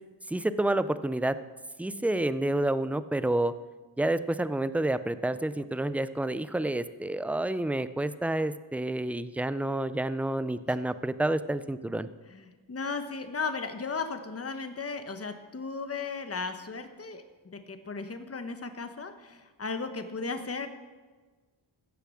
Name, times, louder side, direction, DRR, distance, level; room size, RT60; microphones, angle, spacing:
voice 1, 0.3-1.4 1.8-3.5 4.0-12.1, right 1 dB, 5° right, 14 dB, 0.3 m, -29 dB
voice 2, 12.3-17.2 17.5-20.7, left 4 dB, 30° left, 8 dB, 1.1 m, -35 dB
16.0 x 6.8 x 6.3 m, 1.3 s
wide cardioid pair, 90°, 47 cm